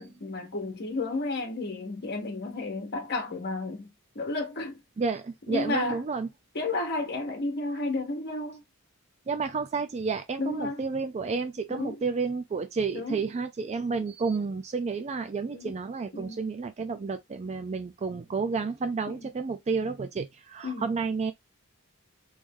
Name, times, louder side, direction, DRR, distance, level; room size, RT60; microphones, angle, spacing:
voice 1, 0.0-4.8 5.5-6.0 6.5-8.6 10.4-10.9 11.7-12.0 12.9-13.2 15.5-15.8 16.1-16.4 19.1-19.3 20.6-20.9, left 2 dB, 50° left, 1.1 m, -32 dB
voice 2, 5.0-6.3 9.3-21.3, right 4 dB, 30° right, 0.4 m, -31 dB
3.2 x 2.6 x 3.5 m
head